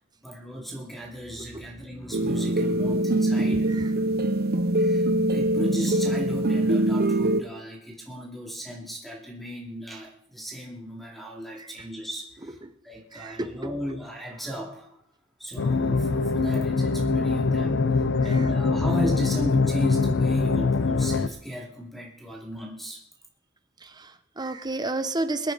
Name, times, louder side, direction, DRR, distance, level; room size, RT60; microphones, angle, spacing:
voice 1, 0.2-3.7 4.8-15.0 15.4-23.0, equal, ahead, -2 dB, 2.6 m, -36 dB
sound 1, 2.1-7.4, right 1 dB, 50° right, 0.9 m, -23 dB
voice 2, 3.5-3.9 11.6-11.7 12.6-12.7 13.1-13.7 18.2-18.5 23.8-25.5, right 2 dB, 20° right, 9 dB, 0.9 m, -32 dB
Standing above a reactor, 15.6-21.3, left 4 dB, 60° left, 0.6 m, -23 dB
23.5 x 9.5 x 4.0 m, 0.72 s
head